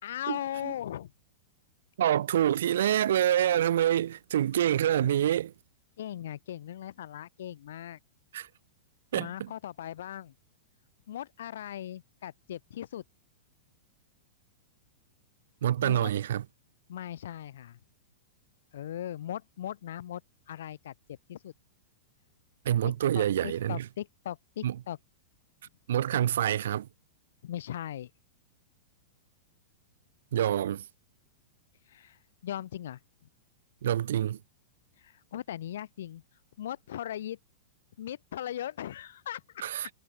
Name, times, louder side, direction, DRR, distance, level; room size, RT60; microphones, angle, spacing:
voice 1, 0.0-1.1 6.0-8.0 9.2-10.3 11.1-13.0 15.8-16.1 16.9-17.8 18.7-20.2 20.5-21.5 22.8-25.0 27.4-28.1 31.9-33.0 35.0-36.2 36.6-37.4 38.0-39.6, left 11 dB, 75° left, 2.3 m, -39 dB
voice 2, 2.0-5.5 8.3-8.5 9.1-9.5 15.6-16.4 22.6-23.8 24.6-24.8 25.9-26.9 30.3-30.8 33.8-34.4 39.6-39.9, right 11 dB, 75° right, 0.9 m, -26 dB
hypercardioid pair, 130°, 0 cm